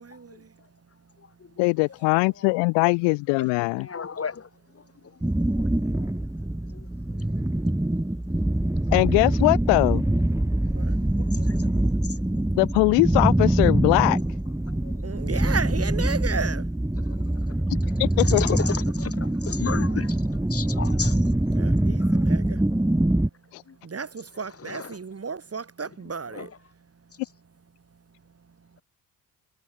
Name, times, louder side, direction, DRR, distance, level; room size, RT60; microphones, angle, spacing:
voice 1, 0.0-1.6 4.8-8.9 10.4-12.6 14.6-17.3 21.5-27.2 27.9-28.8, right 5 dB, 35° right, 2.9 m, -38 dB
voice 2, 1.6-3.9 8.9-10.0 12.6-14.2 17.7-18.5 23.5-23.6, left 33 dB, 85° left, 0.8 m, -21 dB
voice 3, 3.8-5.2 5.5-6.1 6.6-7.3 11.0-12.2 14.7-15.0 17.0-17.6 18.2-21.4 22.0-22.1 23.7-23.8 24.6-24.9 26.3-26.5, left 6 dB, 35° left, 1.9 m, -36 dB
sound 1, 5.2-23.3, right 1 dB, 5° right, 2.5 m, -24 dB
hypercardioid pair, 55°, 42 cm